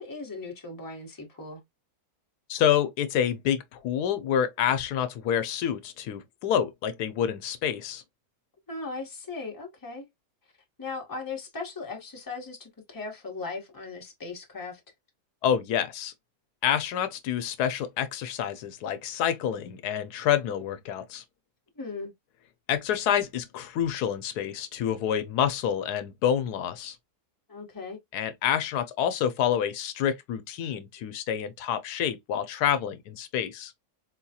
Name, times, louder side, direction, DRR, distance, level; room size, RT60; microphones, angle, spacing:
voice 1, 0.0-1.6 8.7-10.1 10.8-14.8 21.8-22.1 27.5-28.0, left 3 dB, 15° left, 1.0 m, -38 dB
voice 2, 2.5-8.0 15.4-16.1 16.6-21.2 22.7-27.0 28.1-33.7, left 9 dB, 85° left, 1.1 m, -28 dB
4.2 x 2.3 x 2.7 m
omnidirectional pair, 1.7 m